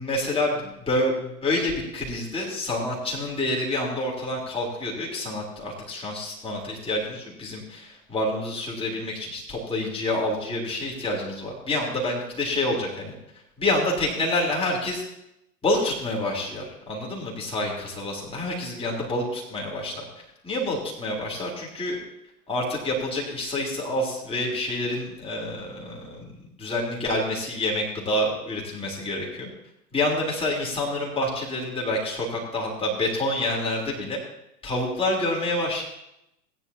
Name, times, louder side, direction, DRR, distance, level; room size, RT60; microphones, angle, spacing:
voice 1, 0.0-13.1 13.6-15.0 15.6-22.0 22.5-29.5 29.9-34.2 34.6-35.8, left 1 dB, 10° left, -2 dB, 3.1 m, -28 dB
18.0 x 9.8 x 2.8 m, 0.84 s
figure-of-eight pair, 100°, 47 cm